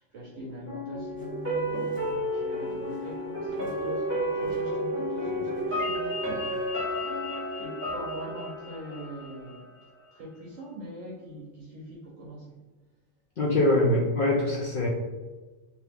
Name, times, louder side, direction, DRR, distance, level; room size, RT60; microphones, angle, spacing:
voice 1, 0.0-6.6 7.5-9.7 10.1-12.6, equal, 65° right, -4 dB, 0.9 m, -42 dB
sound 1, 0.7-9.6 10.0-10.1, equal, 10° right, 1.0 m, -31 dB
sound 2, 1.2-5.8 6.0-6.7, left 1 dB, 10° left, 1.3 m, -46 dB
sound 3, 5.8-9.9, left 5 dB, 40° left, 1.2 m, -43 dB
voice 2, 13.4-14.9, left 1 dB, 60° left, -4 dB, 0.6 m, -23 dB
2.9 x 2.6 x 3.4 m, 1.2 s
omnidirectional pair, 1.4 m